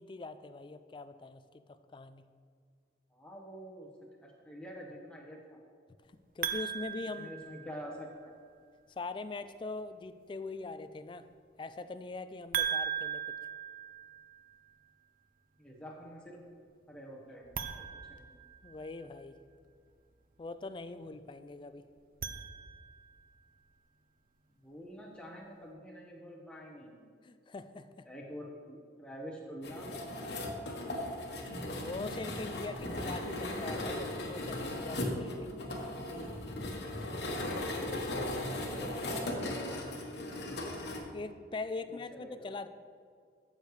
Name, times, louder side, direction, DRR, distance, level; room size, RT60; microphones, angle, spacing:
voice 1, 0.0-2.3 6.1-7.3 8.9-11.3 11.6-13.2 18.6-19.4 20.4-21.9 27.2-28.1 31.8-35.5 41.1-42.7, left 3 dB, 30° left, 12 dB, 0.3 m, -42 dB
voice 2, 3.1-3.9 4.2-5.6 7.2-8.3 15.6-16.4 16.9-18.3 24.6-27.0 28.0-29.9 38.5-39.9 41.9-42.5, equal, 5° left, -2 dB, 1.2 m, -47 dB
sound 1, 6.4-8.1 12.5-14.6 17.4-19.1 22.0-23.2, right 8 dB, 50° right, 0.5 m, -38 dB
sound 2, 29.6-41.0, left 1 dB, 70° left, 1.2 m, -37 dB
13.0 x 6.6 x 3.2 m, 2.2 s
head